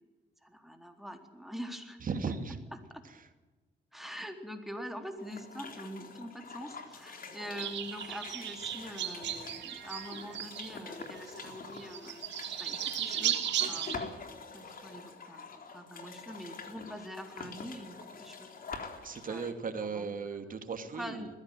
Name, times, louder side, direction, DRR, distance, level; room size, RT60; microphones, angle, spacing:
voice 1, 0.4-2.0 2.7-3.0 3.9-13.4 13.7-14.1 14.5-18.5 19.3-19.5 19.8-20.1 20.9-21.3, equal, ahead, 4 dB, 4.0 m, -44 dB
voice 2, 2.0-2.6 19.0-21.3, right 5 dB, 50° right, 7 dB, 2.7 m, -36 dB
sound 1, 5.2-19.5, left 4 dB, 50° left, 3.8 m, -46 dB
sound 2, 7.6-11.0 11.3-14.0, right 10 dB, 85° right, 2.7 m, -35 dB
21.0 x 15.5 x 9.4 m, 1.2 s
cardioid pair, 80°, 18 cm